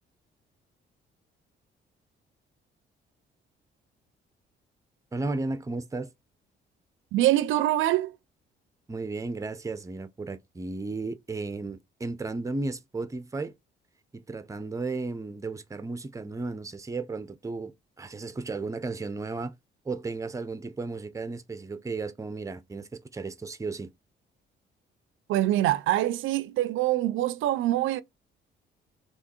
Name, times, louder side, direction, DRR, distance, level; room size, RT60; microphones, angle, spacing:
voice 1, 5.1-6.1 8.9-13.5 14.1-19.5 19.8-23.9, right 3 dB, 15° right, 0.6 m, -34 dB
voice 2, 7.1-8.2 25.3-28.0, right 14 dB, 80° right, 0.4 m, -24 dB
3.5 x 3.0 x 4.2 m
cardioid pair, 90°, 20 cm